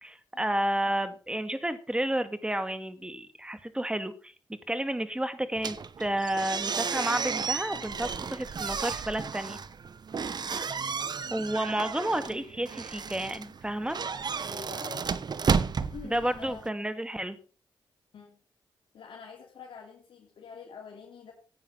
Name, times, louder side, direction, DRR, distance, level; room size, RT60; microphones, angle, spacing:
voice 1, 0.0-9.6 11.3-14.0 16.0-17.4, right 1 dB, 10° right, 10 dB, 2.1 m, -31 dB
sound 1, 5.6-16.7, right 5 dB, 55° right, 0.9 m, -33 dB
voice 2, 14.5-15.2 15.8-16.7 18.1-18.4 18.9-21.3, left 6 dB, 80° left, -2 dB, 2.9 m, -46 dB
16.0 x 9.0 x 5.6 m, 0.40 s
cardioid pair, 70°, 9 cm